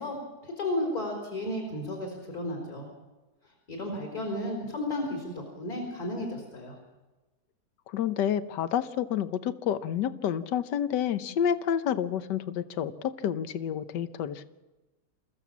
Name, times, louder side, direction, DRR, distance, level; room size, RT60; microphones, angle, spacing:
voice 1, 0.0-2.9 3.7-6.8, left 1 dB, 55° left, 0 dB, 4.7 m, -33 dB
voice 2, 7.9-14.4, left 9 dB, 75° left, 12 dB, 1.5 m, -29 dB
28.0 x 15.0 x 7.4 m, 1.1 s
omnidirectional pair, 1.9 m